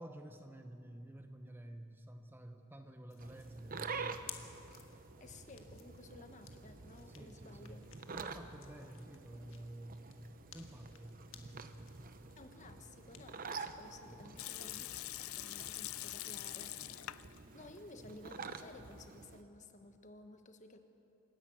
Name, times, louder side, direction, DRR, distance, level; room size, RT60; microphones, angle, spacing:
voice 1, 0.0-4.5 4.9-5.0 7.1-10.2 10.5-12.7 14.0-14.2, right 1 dB, 10° right, 6 dB, 0.8 m, -51 dB
sound 1, 3.1-13.9 14.2-17.4, left 10 dB, 65° left, 1.6 m, -58 dB
sound 2, 3.2-19.4, right 4 dB, 40° right, 0.8 m, -49 dB
voice 2, 5.2-7.9 12.4-17.0 17.5-20.8, left 2 dB, 35° left, 7 dB, 1.2 m, -55 dB
Water tap faucet / Sink (filling or washing) / Liquid, 14.4-17.4 17.7-17.8 18.4-19.0, left 16 dB, 85° left, 0.5 m, -45 dB
27.5 x 11.0 x 8.6 m, 2.8 s
head